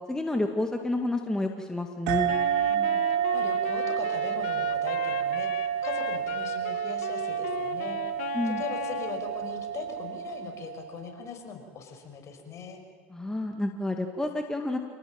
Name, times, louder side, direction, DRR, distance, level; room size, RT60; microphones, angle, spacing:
voice 1, 0.1-2.3 8.3-8.6 13.1-14.8, left 2 dB, 10° left, 4 dB, 2.2 m, -29 dB
sound 1, 2.1-11.1, right 10 dB, 70° right, 2.2 m, -29 dB
Wind instrument woodwind instrument, 2.3-9.2, left 11 dB, 80° left, 2.1 m, -38 dB
voice 2, 2.7-8.0 8.4-12.8, left 6 dB, 45° left, 4 dB, 5.8 m, -40 dB
28.0 x 18.0 x 9.0 m, 1.5 s
hypercardioid pair, 90°, 7 cm